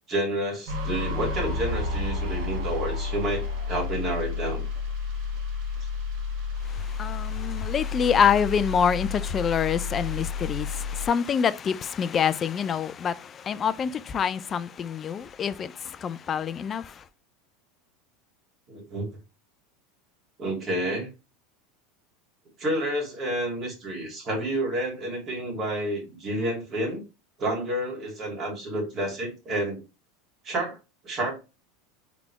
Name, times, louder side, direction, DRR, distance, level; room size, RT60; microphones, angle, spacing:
voice 1, 0.1-4.6 18.7-19.1 20.4-21.1 22.6-27.0 27.4-29.8 30.4-30.8 31.0-31.3, right 1 dB, 35° right, 2.2 m, -29 dB
sound 1, 0.7-11.1, left 4 dB, 60° right, 1.5 m, -31 dB
voice 2, 6.7-17.0, left 7 dB, 30° left, 0.4 m, -26 dB
4.0 x 3.5 x 3.1 m
supercardioid pair, 120°, 0 cm